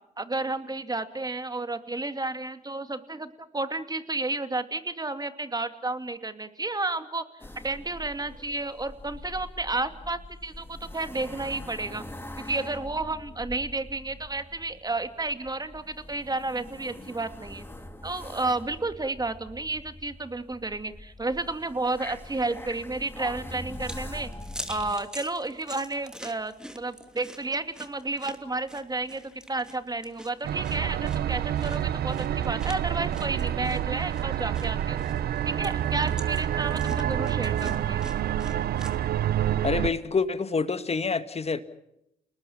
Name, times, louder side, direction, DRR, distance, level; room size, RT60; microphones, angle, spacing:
voice 1, 0.2-7.2 7.6-12.0 12.4-17.6 18.0-24.3 24.7-35.0 35.5-38.0, right 2 dB, 20° right, 9 dB, 2.5 m, -32 dB
sound 1, 7.4-25.0, left 1 dB, 10° left, 3.1 m, -43 dB
sound 2, 23.4-39.0, equal, 5° right, 3.0 m, -46 dB
sound 3, 30.4-39.9, right 11 dB, 60° right, 0.9 m, -28 dB
voice 2, 39.6-41.6, left 4 dB, 35° left, 11 dB, 1.9 m, -27 dB
29.5 x 19.5 x 7.3 m, 0.82 s
hypercardioid pair, 45°, 18 cm